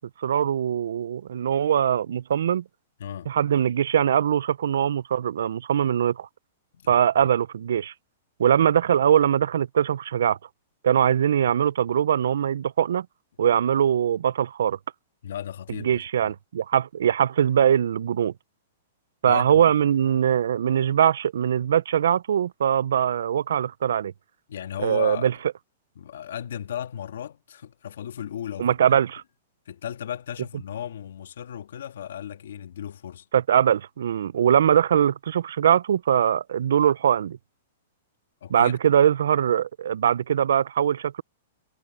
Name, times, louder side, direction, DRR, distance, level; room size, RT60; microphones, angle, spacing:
voice 1, 0.2-2.6 3.3-6.3 6.9-7.9 8.4-10.4 10.8-13.1 13.4-14.8 15.8-18.3 19.2-24.1 24.8-25.3 28.6-29.2 33.3-37.4 38.5-41.2, right 9 dB, 80° right, 0.4 m, -22 dB
voice 2, 3.0-3.3 6.7-7.3 15.2-16.3 19.3-19.7 24.5-25.3 25.9-29.0 29.6-33.3 38.4-38.8, left 9 dB, 75° left, 1.7 m, -35 dB
hypercardioid pair, 160°, 0 cm